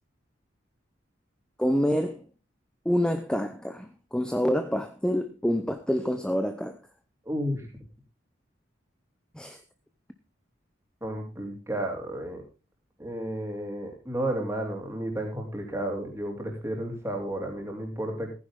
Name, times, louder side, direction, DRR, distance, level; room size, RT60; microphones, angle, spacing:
voice 1, 1.6-2.2 2.9-6.8 9.4-9.6, equal, 5° left, 0.7 m, -27 dB
voice 2, 7.2-7.6 11.0-12.4 13.0-18.3, right 1 dB, 15° right, 3.3 m, -32 dB
15.5 x 10.0 x 3.7 m
head